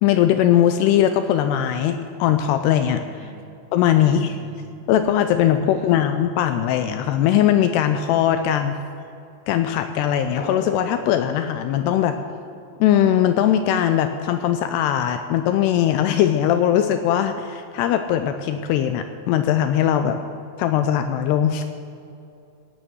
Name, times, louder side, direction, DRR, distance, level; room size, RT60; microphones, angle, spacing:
voice 1, 0.0-3.0 3.7-4.4 4.9-8.8 9.5-12.2 12.8-20.2 20.6-21.6, left 10 dB, 80° left, 8 dB, 2.5 m, -20 dB
voice 2, 3.2-3.6 4.0-4.7 5.7-6.0, right 7 dB, 80° right, 7 dB, 2.9 m, -43 dB
Drum, 10.4-13.1, left 3 dB, 65° left, 3.1 m, -39 dB
16.5 x 9.4 x 6.2 m, 2.7 s
omnidirectional pair, 5.1 m